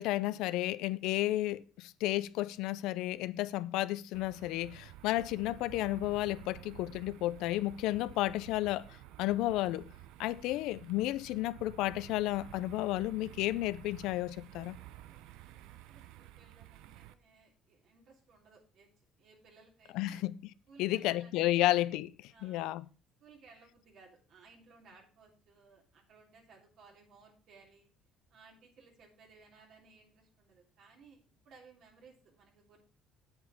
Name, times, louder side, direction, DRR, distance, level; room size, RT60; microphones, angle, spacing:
voice 1, 0.0-8.9 9.2-9.9 10.2-14.8 19.9-20.4 20.8-22.9, left 16 dB, 85° left, 0.5 m, -32 dB
sound 1, 4.1-17.1, right 14 dB, 90° right, 0.7 m, -52 dB
voice 2, 15.5-18.9 19.2-20.2 20.7-21.7 22.3-22.7 23.2-27.9 28.3-32.9, right 4 dB, 65° right, 3.2 m, -60 dB
8.1 x 8.1 x 4.9 m
cardioid pair, 115°, 0 cm